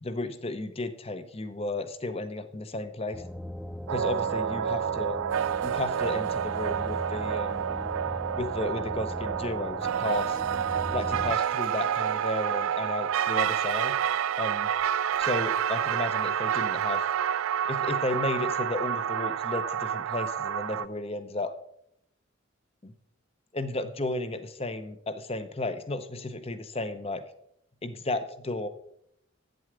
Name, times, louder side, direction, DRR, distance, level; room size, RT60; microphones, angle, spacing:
voice 1, 0.0-3.2 3.9-5.2 5.6-7.7 8.4-10.4 10.9-14.0 14.4-14.7 15.2-17.0 17.7-21.5 22.8-22.9 23.5-27.2 27.8-28.7, left 2 dB, 30° left, 11 dB, 0.7 m, -33 dB
sound 1, 3.1-11.4, left 1 dB, ahead, 0.3 m, -39 dB
sound 2, 3.9-20.9, right 9 dB, 80° right, 0.3 m, -29 dB
8.8 x 7.9 x 5.0 m, 0.71 s
head